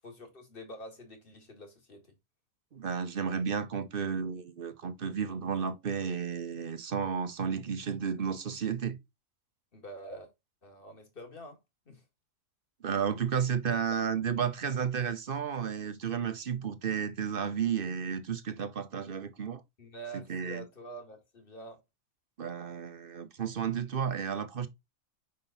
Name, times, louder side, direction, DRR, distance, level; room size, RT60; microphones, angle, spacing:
voice 1, 0.0-2.1 9.7-10.3 10.6-11.6 11.9-12.0 13.7-13.8 19.8-21.8, right 1 dB, 40° left, 2.2 m, -46 dB
voice 2, 2.7-9.0 12.8-19.6 20.1-20.6 22.4-24.7, right 7 dB, 50° right, 0.9 m, -32 dB
6.0 x 5.4 x 3.9 m
omnidirectional pair, 1.4 m